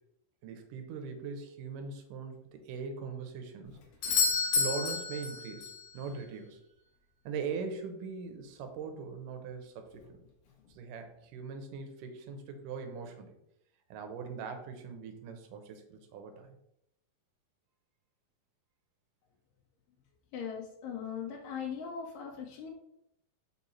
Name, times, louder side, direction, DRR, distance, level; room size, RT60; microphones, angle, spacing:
voice 1, 0.4-3.8 4.5-6.6 7.3-10.2 10.7-13.3 13.9-16.6, right 5 dB, 80° right, 6 dB, 2.4 m, -41 dB
Doorbell, 4.0-5.9 9.9-10.0, left 5 dB, 65° left, 1.6 m, -30 dB
voice 2, 20.3-22.7, left 7 dB, 80° left, -1 dB, 2.3 m, -39 dB
5.5 x 4.1 x 4.2 m, 0.79 s
omnidirectional pair, 3.9 m